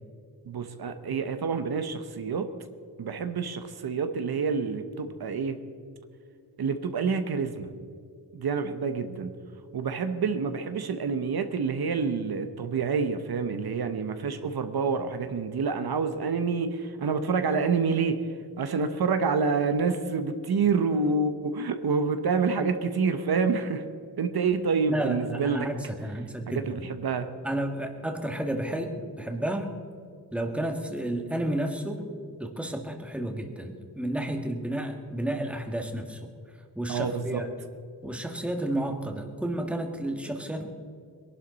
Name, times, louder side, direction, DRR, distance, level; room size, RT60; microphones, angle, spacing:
voice 1, 0.4-2.5 3.0-5.6 6.6-7.7 8.3-9.3 9.7-18.2 18.6-23.8 24.2-25.7 26.5-27.3 36.9-37.4, right 5 dB, 65° right, 8 dB, 1.0 m, -27 dB
voice 2, 24.9-26.8 27.4-29.8 30.3-32.1 32.4-36.3 36.7-37.5 38.0-40.7, right 1 dB, 5° right, 3 dB, 1.5 m, -31 dB
22.0 x 11.5 x 4.1 m, 2.3 s
wide cardioid pair, 130°, 40 cm